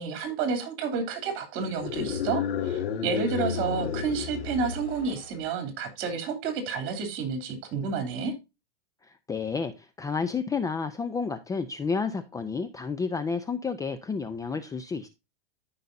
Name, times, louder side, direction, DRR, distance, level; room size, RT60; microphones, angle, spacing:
voice 1, 0.0-8.3, right 5 dB, 45° right, 3.1 m, -30 dB
sound 1, 1.7-5.3, left 8 dB, 85° left, 2.6 m, -32 dB
voice 2, 9.1-15.1, left 5 dB, 10° left, 0.5 m, -31 dB
14.0 x 5.5 x 2.6 m
supercardioid pair, 130°, 29 cm